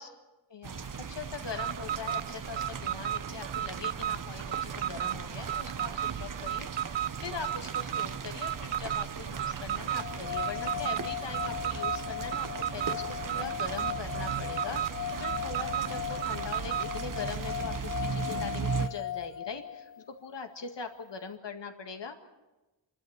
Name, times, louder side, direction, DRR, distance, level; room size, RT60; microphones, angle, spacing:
voice 1, 0.5-17.7 18.1-19.9 20.2-22.2, left 5 dB, 70° left, 6 dB, 2.0 m, -41 dB
sound 1, 0.6-18.9, right 6 dB, 45° right, 0.9 m, -38 dB
Alarm, 1.5-16.9, right 11 dB, 75° right, 0.6 m, -34 dB
sound 2, 9.9-20.0, left 12 dB, 45° left, 0.7 m, -38 dB
27.5 x 12.5 x 8.1 m, 1.1 s
wide cardioid pair, 125°, 44 cm